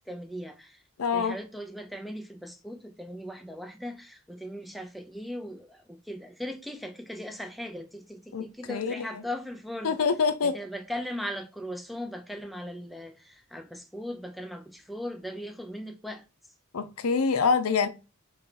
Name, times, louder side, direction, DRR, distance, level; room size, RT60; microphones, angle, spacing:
voice 1, 0.1-0.8 1.1-10.0 10.4-16.2, equal, ahead, 0.5 m, -38 dB
voice 2, 1.0-1.4 8.3-9.1 9.8-10.5 16.7-17.9, left 5 dB, 80° left, 0.6 m, -25 dB
4.2 x 3.3 x 3.8 m
head